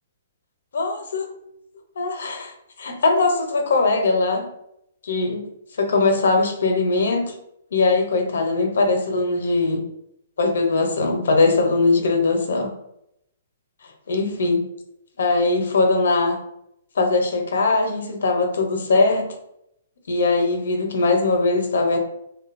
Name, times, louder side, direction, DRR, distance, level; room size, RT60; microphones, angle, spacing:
voice 1, 0.7-1.3 2.0-4.5 5.0-5.5 5.8-7.3 7.7-9.8 10.4-12.7 13.8-14.6 15.2-16.4 16.9-19.3 20.1-22.0, left 3 dB, 80° left, 4 dB, 0.6 m, -21 dB
2.7 x 2.2 x 2.4 m, 0.78 s
hypercardioid pair, 165°, 0 cm